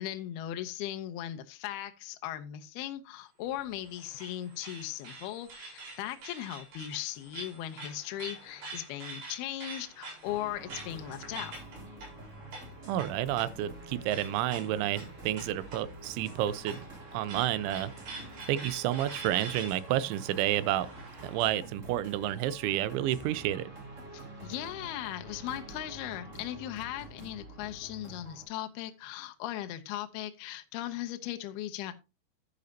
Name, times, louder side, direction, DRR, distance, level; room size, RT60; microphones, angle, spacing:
voice 1, 0.0-11.6 24.1-31.9, left 13 dB, 80° left, 2.4 m, -38 dB
sound 1, 3.4-21.6, right 3 dB, 60° right, 6.4 m, -47 dB
sound 2, 10.2-28.4, right 1 dB, 20° right, 2.3 m, -47 dB
voice 2, 12.9-16.8 17.1-17.9 18.5-20.9 21.2-23.7, right 13 dB, 85° right, 3.1 m, -30 dB
10.5 x 10.5 x 2.8 m
omnidirectional pair, 5.4 m